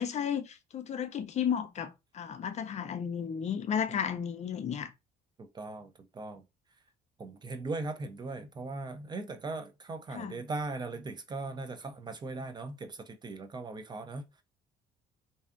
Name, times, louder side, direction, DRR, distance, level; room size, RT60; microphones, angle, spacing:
voice 1, 0.0-4.9 10.1-10.4, left 8 dB, 40° left, 0.4 m, -33 dB
voice 2, 5.4-6.4 7.2-14.2, right 3 dB, 25° right, 0.3 m, -39 dB
2.6 x 2.3 x 2.4 m
cardioid pair, 110°, 17 cm